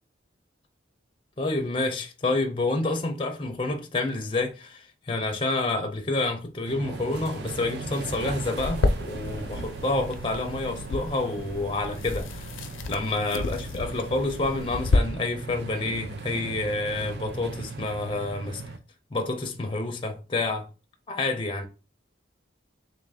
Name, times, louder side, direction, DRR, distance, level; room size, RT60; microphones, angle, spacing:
voice 1, 1.4-12.5 12.9-18.6 19.1-20.7 21.1-21.7, left 2 dB, 25° left, 0.4 m, -28 dB
sound 1, 6.6-18.8, right 4 dB, 55° right, 0.4 m, -38 dB
sound 2, 8.6-15.0, left 3 dB, 90° left, 0.5 m, -30 dB
3.7 x 2.4 x 3.4 m
head